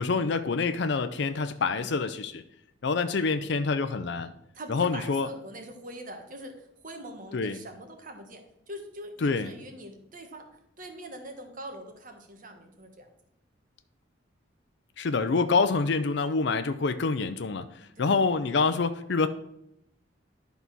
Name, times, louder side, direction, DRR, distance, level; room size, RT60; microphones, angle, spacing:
voice 1, 0.0-2.4 2.8-4.3 4.7-5.3 7.3-7.6 9.2-9.5 15.0-19.3, left 4 dB, 60° left, 0.5 m, -26 dB
voice 2, 4.5-8.4 8.7-13.1 17.9-18.2, right 1 dB, 45° right, 1.4 m, -43 dB
11.5 x 4.1 x 6.0 m
head